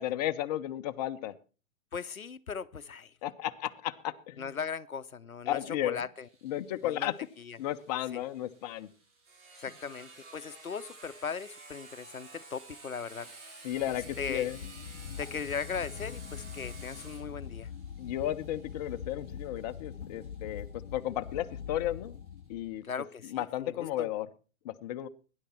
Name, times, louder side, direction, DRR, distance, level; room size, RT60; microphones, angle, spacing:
voice 1, 0.0-1.3 3.2-4.5 5.5-6.0 6.4-7.1 7.6-8.9 13.6-14.6 18.0-22.1 22.5-22.8 23.3-24.3 24.6-25.1, left 13 dB, 30° left, 0.8 m, -34 dB
voice 2, 1.9-3.1 4.4-6.3 6.8-7.1 7.4-7.6 8.1-8.2 9.6-13.3 13.9-14.5 15.2-17.7 22.8-24.1, left 6 dB, 90° left, 0.7 m, -38 dB
Sawing, 6.2-21.6, right 3 dB, 60° right, 5.9 m, -53 dB
sound 1, 13.7-22.8, left 8 dB, 65° left, 0.9 m, -43 dB
18.5 x 10.5 x 4.4 m
figure-of-eight pair, 115°, 41 cm